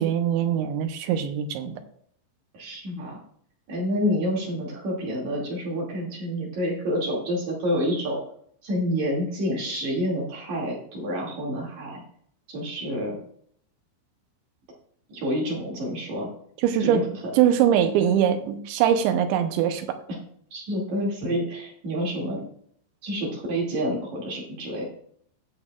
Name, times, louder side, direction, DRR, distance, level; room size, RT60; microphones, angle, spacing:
voice 1, 0.0-1.7 16.6-17.0 17.3-20.0, right 9 dB, 85° right, 8 dB, 3.1 m, -22 dB
voice 2, 2.5-3.2 3.7-8.2 8.6-12.0 12.5-13.2 15.1-16.3 16.8-17.0 20.5-22.4 23.0-24.8, equal, 45° right, -3 dB, 3.3 m, -28 dB
17.5 x 6.3 x 2.4 m, 0.64 s
omnidirectional pair, 5.2 m